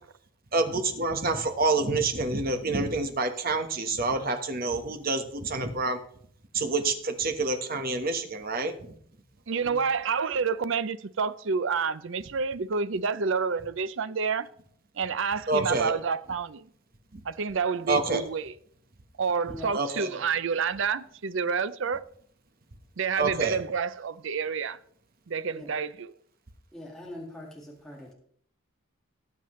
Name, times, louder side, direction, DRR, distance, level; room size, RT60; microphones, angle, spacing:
voice 1, 0.5-6.0 6.5-8.7 15.5-15.9 17.9-18.2 19.7-20.1 23.2-23.6, right 3 dB, 45° right, 1.2 m, -27 dB
voice 2, 9.5-14.5 15.0-16.7 17.2-18.5 19.2-22.0 23.0-24.8 25.3-26.1, right 5 dB, 60° right, 0.5 m, -29 dB
voice 3, 20.0-20.3 25.5-25.7 26.7-28.1, left 1 dB, ahead, 1.8 m, -43 dB
18.5 x 7.4 x 3.2 m
head